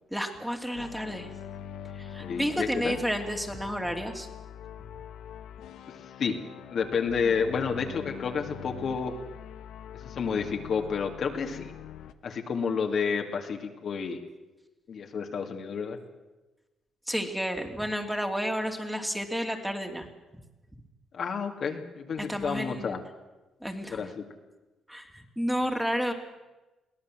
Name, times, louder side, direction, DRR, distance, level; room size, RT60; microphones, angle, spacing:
voice 1, 0.1-1.3 2.0-4.3 17.1-20.1 22.2-23.0 23.6-24.1 24.9-26.1, equal, 5° right, 4 dB, 2.7 m, -31 dB
sound 1, 0.7-12.1, left 9 dB, 80° left, 1.1 m, -43 dB
voice 2, 2.2-2.9 6.2-9.2 9.9-11.7 12.2-14.2 14.9-16.0 21.1-23.0 23.9-24.2, left 6 dB, 55° left, 4 dB, 2.3 m, -30 dB
23.0 x 17.0 x 7.6 m, 1.1 s
cardioid pair, 90°, 0 cm